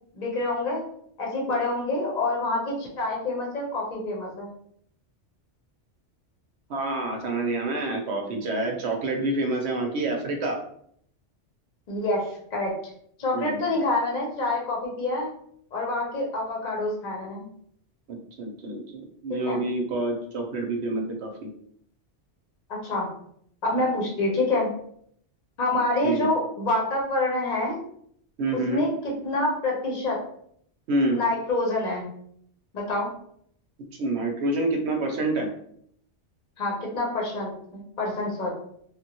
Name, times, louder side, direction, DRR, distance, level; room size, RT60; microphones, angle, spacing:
voice 1, 0.1-0.8 1.2-4.5 11.9-12.8 13.2-15.3 15.7-17.5 19.5-19.6 22.7-23.1 23.6-24.7 25.6-27.8 28.5-28.9 29.2-30.2 31.1-32.1 32.7-33.1 36.6-38.5, left 2 dB, 45° left, -1 dB, 0.8 m, -27 dB
voice 2, 6.7-10.6 13.3-13.6 18.1-21.5 26.0-26.3 28.4-28.8 30.9-31.2 34.0-35.5, right 2 dB, 70° right, 2 dB, 0.8 m, -27 dB
3.4 x 2.1 x 2.9 m, 0.67 s
omnidirectional pair, 1.2 m